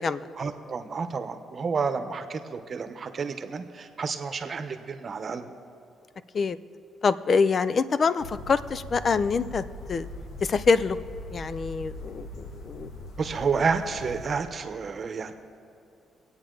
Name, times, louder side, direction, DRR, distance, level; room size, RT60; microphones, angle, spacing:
voice 1, 0.4-5.5 13.2-15.3, right 5 dB, 45° right, 8 dB, 0.9 m, -30 dB
voice 2, 7.0-10.1 10.4-11.0 11.3-12.9, left 5 dB, 45° left, 15 dB, 0.5 m, -25 dB
sound 1, 8.2-14.4, left 1 dB, 75° left, 1.7 m, -41 dB
24.5 x 8.8 x 3.9 m, 2.8 s
cardioid pair, 90°, 0 cm